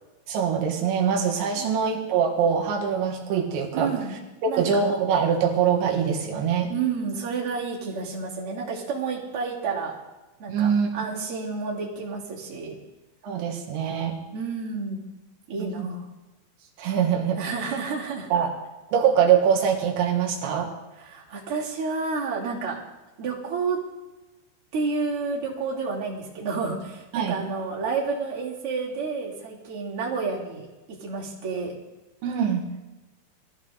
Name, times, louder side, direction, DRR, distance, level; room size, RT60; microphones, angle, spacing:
voice 1, 0.3-3.9 4.4-6.7 10.5-10.9 13.2-14.1 15.6-15.9 16.8-17.4 18.3-18.5 18.9-20.7 27.1-27.4 32.2-32.6, right 7 dB, 90° right, 0 dB, 4.1 m, -23 dB
voice 2, 3.7-4.1 4.5-4.9 6.7-9.9 10.4-12.8 14.3-15.0 15.5-16.1 17.4-18.3 21.0-22.8 23.2-23.8 24.7-31.8, right 4 dB, 35° right, -4 dB, 3.4 m, -30 dB
21.5 x 14.5 x 4.0 m, 1.1 s
omnidirectional pair, 5.1 m